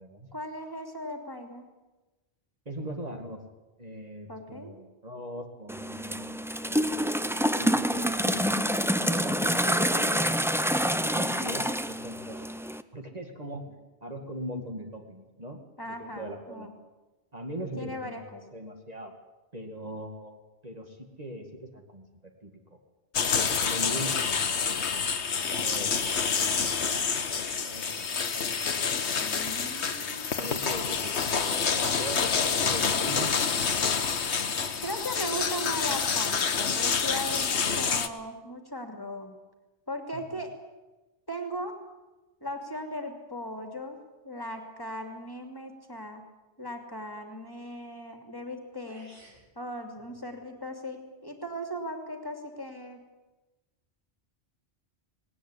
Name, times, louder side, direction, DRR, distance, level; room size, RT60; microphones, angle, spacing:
voice 1, 0.3-1.7 4.3-4.7 15.8-16.7 17.8-18.4 29.2-30.4 34.8-39.3 39.9-40.5 41.3-41.7 42.4-44.0 44.2-46.2 46.6-49.2 49.6-53.0, equal, 20° left, 4 dB, 2.9 m, -38 dB
voice 2, 2.7-3.4 3.8-8.5 8.9-10.6 10.9-12.4 12.9-16.7 17.3-19.1 19.5-20.4 20.6-22.8 23.3-24.9 25.3-27.1 27.4-28.5 30.0-33.3 40.1-40.4, right 1 dB, 35° right, 3 dB, 2.3 m, -41 dB
sound 1, 5.7-12.8, equal, 5° right, 0.5 m, -27 dB
sound 2, 23.1-38.1, left 6 dB, 75° left, 1.5 m, -28 dB
sound 3, 48.5-48.6 48.9-49.5, right 1 dB, 80° right, 7.8 m, -52 dB
19.0 x 18.5 x 9.9 m, 1.1 s
omnidirectional pair, 1.1 m